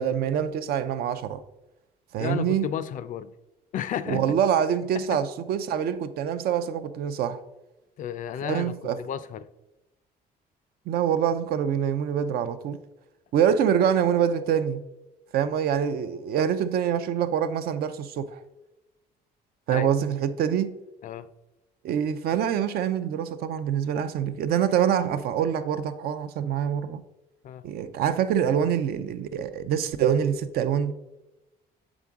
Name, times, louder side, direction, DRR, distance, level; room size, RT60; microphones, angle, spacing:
voice 1, 0.0-1.4 2.1-2.7 4.1-7.4 8.4-9.0 10.9-12.8 13.3-14.8 15.3-18.4 19.7-20.7 21.8-27.0 27.6-30.9, right 8 dB, 65° right, 0.5 m, -25 dB
voice 2, 2.2-3.3 3.7-4.4 4.9-5.2 8.0-9.5 19.7-19.9 21.0-21.3 27.4-27.6, left 9 dB, 50° left, 0.4 m, -33 dB
7.1 x 3.8 x 3.5 m
cardioid pair, 110°, 17 cm